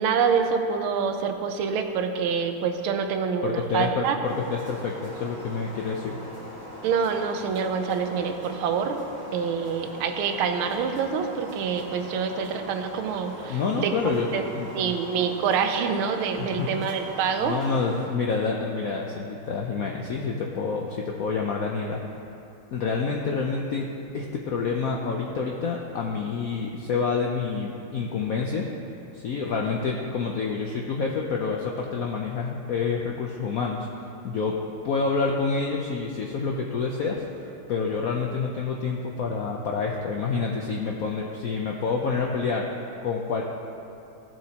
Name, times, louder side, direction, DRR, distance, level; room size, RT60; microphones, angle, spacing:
voice 1, 0.0-4.2 6.8-9.0 9.3-13.9 14.3-14.4 14.7-17.5, right 6 dB, 85° right, 6 dB, 1.6 m, -26 dB
voice 2, 3.4-6.2 13.5-14.3 14.5-15.0 16.4-16.7 17.4-22.0 22.7-23.9 24.1-28.7 29.1-34.6 34.8-42.7 43.0-43.4, left 4 dB, 80° left, 0 dB, 0.8 m, -28 dB
sound 1, 4.2-18.1, equal, 10° left, 2.0 m, -41 dB
15.0 x 7.5 x 2.9 m, 2.7 s
omnidirectional pair, 2.3 m